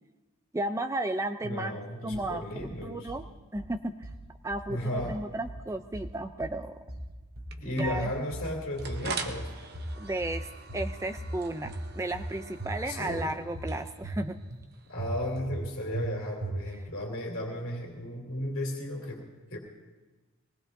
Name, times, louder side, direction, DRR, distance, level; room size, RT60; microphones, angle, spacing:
voice 1, 0.5-1.8 2.0-2.4 2.8-3.2 3.5-4.1 4.4-6.8 7.7-8.1 10.0-10.5 10.7-14.4, right 1 dB, 15° right, 8 dB, 0.4 m, -33 dB
voice 2, 1.4-3.1 4.7-5.3 7.6-9.5 12.8-13.3 14.9-19.6, left 1 dB, 65° left, -1 dB, 2.7 m, -35 dB
sound 1, 2.1-2.7 3.1-3.7 4.0-4.7 5.0-5.7 5.9-6.6 6.9-7.6 7.8-8.5 8.8-9.5 9.7-10.4 10.7-11.3 11.6-12.3 12.6-13.2 13.5-14.2 14.5-14.6 15.0-15.6 15.9-16.1 16.4-16.9, right 1 dB, 85° right, 2.2 m, -38 dB
sound 2, 7.5-15.4, right 4 dB, 45° right, 0.8 m, -43 dB
23.0 x 19.0 x 2.6 m, 1.2 s
head